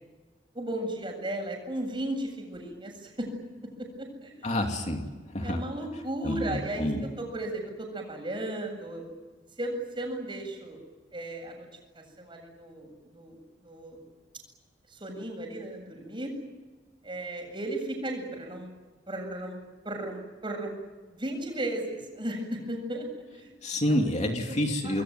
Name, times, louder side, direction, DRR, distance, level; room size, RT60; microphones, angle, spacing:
voice 1, 0.5-3.3 3.8-4.5 5.4-9.0 9.6-10.8 11.1-11.7 11.9-14.0 14.9-16.3 17.0-18.7 19.1-19.6 19.8-20.7 21.1-23.1 23.3-23.5 23.9-24.1 24.5-24.6 24.8-25.0, right 1 dB, 30° right, 3 dB, 7.9 m, -35 dB
voice 2, 4.4-5.6 6.2-7.0 23.6-25.0, left 1 dB, 40° left, 3 dB, 2.8 m, -28 dB
27.5 x 21.5 x 9.4 m, 1.3 s
head